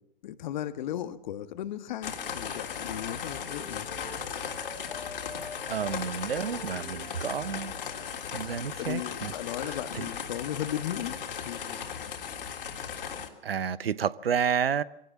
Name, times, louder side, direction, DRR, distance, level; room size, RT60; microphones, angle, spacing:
voice 1, 0.2-3.9 8.8-11.2 11.4-12.2, left 11 dB, 50° left, 1.5 m, -36 dB
sound 1, 2.0-13.3, left 7 dB, 65° left, 3.3 m, -37 dB
Wind instrument woodwind instrument, 2.5-8.2, left 4 dB, 85° left, 2.5 m, -47 dB
voice 2, 5.7-7.7 8.3-9.3 9.9-10.1 13.4-14.8, right 7 dB, 80° right, 0.9 m, -30 dB
23.0 x 17.5 x 7.2 m
hypercardioid pair, 125°, 29 cm